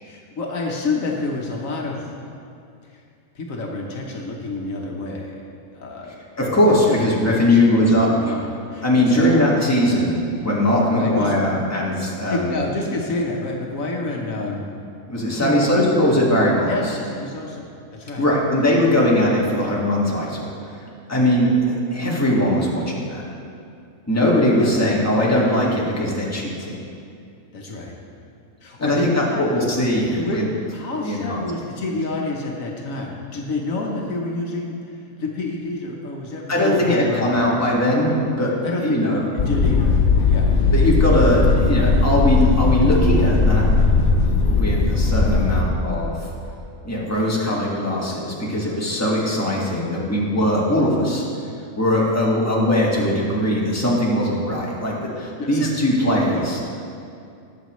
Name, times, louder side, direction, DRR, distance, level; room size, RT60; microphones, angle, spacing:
voice 1, 0.0-2.1 2.9-3.0 3.3-5.3 5.7-6.2 6.9-9.5 10.9-11.3 12.3-14.6 15.2-16.1 16.7-18.3 21.2-21.3 24.6-24.8 27.5-27.9 28.6-29.5 30.1-30.4 30.7-37.5 38.6-40.5 51.9-52.1 55.4-55.7, left 2 dB, 70° left, -1 dB, 1.4 m, -28 dB
voice 2, 6.4-8.3 8.8-12.6 15.1-16.7 18.2-20.5 21.1-23.2 24.1-26.8 28.8-30.5 31.0-31.4 36.5-38.5 38.8-39.2 40.7-43.7 44.5-46.3 46.8-51.2 51.8-56.6, left 1 dB, 10° left, -5 dB, 1.7 m, -20 dB
sound 1, 39.4-45.6, left 4 dB, 45° left, 0.9 m, -18 dB
19.5 x 6.8 x 3.1 m, 2.5 s
omnidirectional pair, 1.5 m